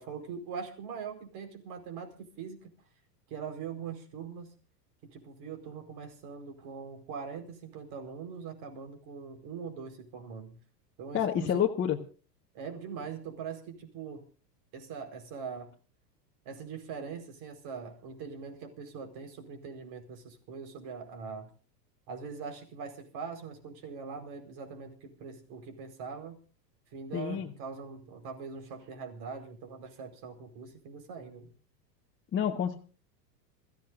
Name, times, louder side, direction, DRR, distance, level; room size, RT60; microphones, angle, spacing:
voice 1, 0.0-2.7 3.3-4.5 5.0-10.6 11.0-11.7 12.5-14.2 14.7-15.7 16.4-21.5 22.1-26.4 26.9-31.5, right 6 dB, 50° right, 5 dB, 4.7 m, -42 dB
voice 2, 11.1-12.0 27.1-27.5 32.3-32.7, left 9 dB, 25° left, -1 dB, 1.4 m, -28 dB
27.0 x 15.0 x 2.6 m, 0.37 s
hypercardioid pair, 120°, 49 cm